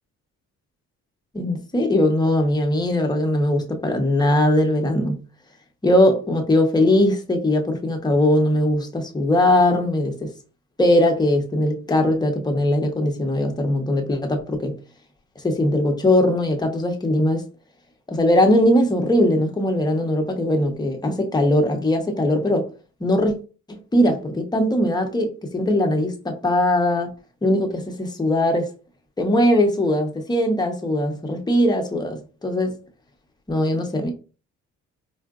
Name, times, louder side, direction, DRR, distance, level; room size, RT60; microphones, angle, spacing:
voice 1, 1.3-5.2 5.8-10.3 10.8-14.8 15.4-17.4 18.1-22.7 23.0-23.3 23.7-27.1 27.4-28.7 29.2-32.8 33.5-34.1, left 1 dB, 15° left, 0.8 m, -20 dB
4.5 x 2.4 x 2.4 m
cardioid pair, 90°, 30 cm